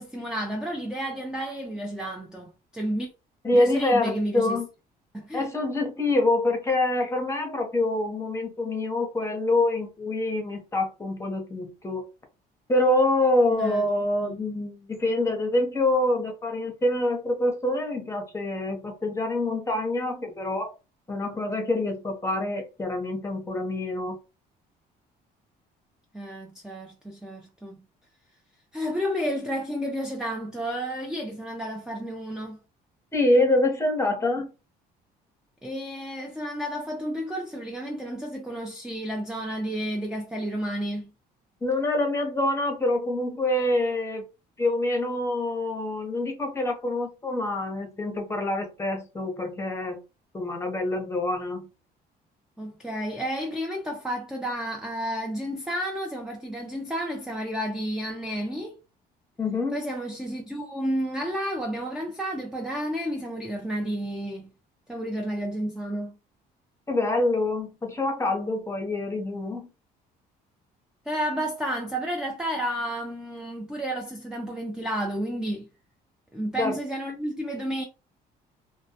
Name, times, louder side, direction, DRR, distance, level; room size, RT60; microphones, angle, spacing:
voice 1, 0.0-3.1 3.5-4.6 5.1-5.5 13.5-13.9 14.2-14.4 26.1-27.8 28.7-32.6 35.6-41.1 52.6-58.7 59.7-64.5 64.9-66.2 71.1-75.7 76.3-77.8, equal, 5° right, 0.4 m, -31 dB
voice 2, 3.4-4.7 5.3-12.0 12.7-20.7 21.1-24.2 33.1-34.5 41.6-44.2 44.6-50.0 50.3-51.7 59.4-59.8 66.9-69.7 76.6-76.8, left 2 dB, 15° left, 0.8 m, -26 dB
2.2 x 2.1 x 2.7 m
cardioid pair, 110°, 17 cm